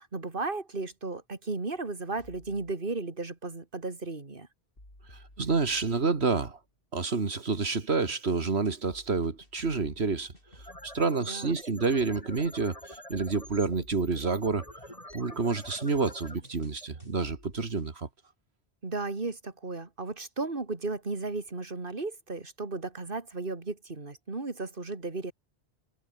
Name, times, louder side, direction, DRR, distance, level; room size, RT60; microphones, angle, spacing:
voice 1, 0.0-4.5 11.3-11.6 18.8-25.3, right 3 dB, 55° right, 2.9 m, -35 dB
sound 1, 2.2-2.7 4.8-6.6 7.3-11.1 13.1-15.0 15.7-17.9, left 1 dB, 60° left, 8.1 m, -55 dB
voice 2, 5.1-6.6 6.9-18.1, right 4 dB, 85° right, 2.3 m, -29 dB
sound 2, 10.5-17.6, left 1 dB, 35° left, 6.6 m, -47 dB
omnidirectional pair, 1.0 m